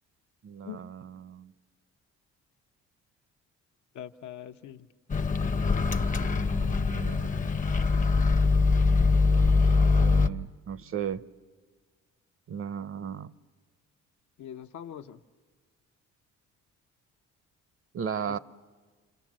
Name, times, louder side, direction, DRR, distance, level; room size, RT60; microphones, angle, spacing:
voice 1, 0.4-1.5 6.3-7.3 9.3-11.2 12.5-13.3 17.9-18.4, right 7 dB, 45° right, 17 dB, 0.7 m, -36 dB
voice 2, 3.9-4.9 14.4-15.2, left 10 dB, 70° left, 7 dB, 0.9 m, -42 dB
Microwave oven, 5.1-10.3, left 4 dB, 25° left, 0.7 m, -23 dB
28.0 x 26.0 x 7.5 m, 1.5 s
cardioid pair, 90°, 30 cm